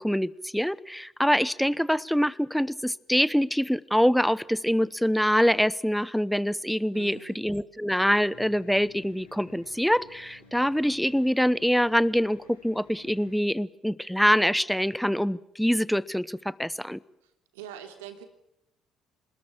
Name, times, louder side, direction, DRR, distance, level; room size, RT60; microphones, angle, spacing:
voice 1, 0.0-17.0, equal, ahead, 20 dB, 1.0 m, -25 dB
voice 2, 6.9-7.4 17.2-18.2, right 9 dB, 75° right, 6 dB, 3.0 m, -44 dB
sound 1, 8.3-13.3, left 4 dB, 90° left, 4.4 m, -54 dB
27.5 x 20.5 x 7.4 m, 0.79 s
figure-of-eight pair, 50°, 0 cm